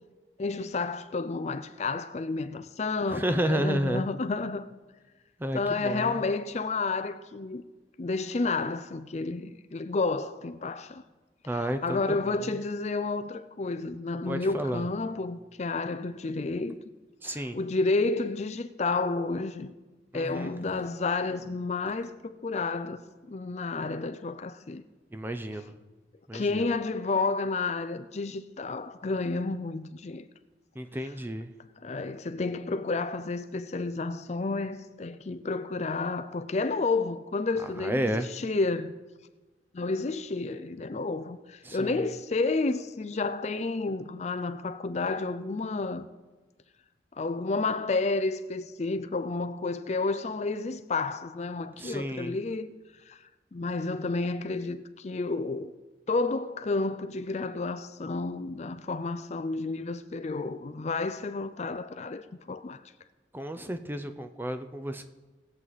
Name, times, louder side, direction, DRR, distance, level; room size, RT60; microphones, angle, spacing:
voice 1, 0.4-4.7 5.5-7.6 8.0-11.0 11.4-16.7 17.2-19.8 20.1-23.0 23.3-24.8 26.3-30.3 31.0-31.1 31.8-38.9 39.7-46.1 47.2-52.7 53.1-53.2 53.5-55.7 56.1-62.8, left 3 dB, 40° left, 0.4 m, -31 dB
voice 2, 3.1-4.1 5.4-6.2 11.5-12.4 14.3-14.9 17.2-17.6 20.1-20.6 25.1-25.7 26.3-26.6 30.8-31.5 37.8-38.3 41.7-41.9 51.8-52.3 63.3-65.0, right 1 dB, 10° right, 0.6 m, -31 dB
19.0 x 7.6 x 4.0 m
head